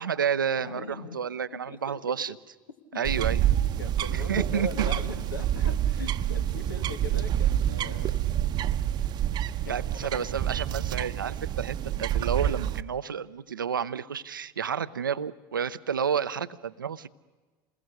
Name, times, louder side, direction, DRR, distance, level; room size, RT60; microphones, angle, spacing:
voice 1, 0.0-2.3 2.9-3.4 4.1-4.9 9.7-17.1, right 7 dB, 85° right, 15 dB, 0.7 m, -30 dB
voice 2, 0.6-1.2 1.5-1.8 2.9-3.3 3.8-8.2 9.6-10.3, left 3 dB, 85° left, 7 dB, 1.8 m, -40 dB
sound 1, 3.0-12.8, right 11 dB, 40° right, 0.8 m, -28 dB
28.0 x 21.0 x 6.6 m, 1.3 s
figure-of-eight pair, 75°, 11 cm